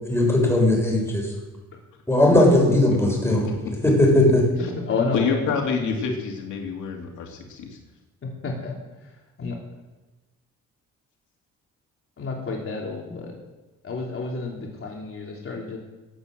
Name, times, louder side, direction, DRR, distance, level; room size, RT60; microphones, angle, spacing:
voice 1, 0.1-1.3 2.1-3.4 3.8-4.4, left 1 dB, 10° left, 0 dB, 6.7 m, -18 dB
voice 2, 2.9-3.5 4.6-4.7 5.1-7.8, left 5 dB, 80° left, 1 dB, 2.5 m, -28 dB
voice 3, 4.8-5.7 8.2-8.7 9.0-9.1 9.4-9.6 12.2-13.3 13.8-15.8, left 4 dB, 45° left, -2 dB, 3.6 m, -30 dB
18.0 x 8.0 x 7.9 m, 1.1 s
cardioid pair, 90°, 30 cm